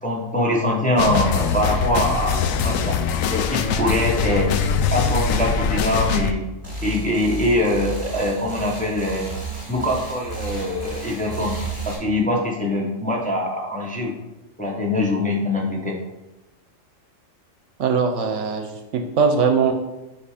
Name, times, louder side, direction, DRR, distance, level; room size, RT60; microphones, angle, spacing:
voice 1, 0.0-3.0 3.3-4.5 4.9-6.4 6.8-9.3 9.7-11.6 11.9-14.1 14.6-16.0, left 1 dB, 5° left, -2 dB, 0.9 m, -23 dB
sound 1, 1.0-6.3, left 6 dB, 90° left, 1.0 m, -22 dB
sound 2, 6.6-12.0, right 2 dB, 20° right, 2.1 m, -32 dB
voice 2, 17.8-19.7, right 5 dB, 70° right, 5 dB, 1.0 m, -21 dB
8.3 x 3.2 x 4.9 m, 0.99 s
omnidirectional pair, 1.3 m